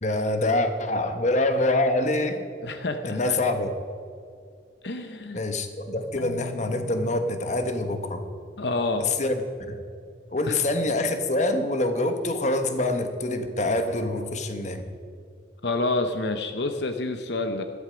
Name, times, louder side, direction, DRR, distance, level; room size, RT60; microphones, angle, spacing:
voice 1, 0.0-2.4 3.0-3.7 5.3-8.2 9.0-9.4 9.7-9.8 10.3-14.8, left 2 dB, 40° left, 7 dB, 1.1 m, -25 dB
voice 2, 2.6-3.4 4.8-5.4 8.6-9.1 10.5-10.6 15.6-17.6, left 2 dB, 65° left, 7 dB, 0.8 m, -28 dB
Marimba xylophone, 6.2-9.2, left 10 dB, 90° left, 0.9 m, -46 dB
13.5 x 13.5 x 5.1 m, 2.3 s
head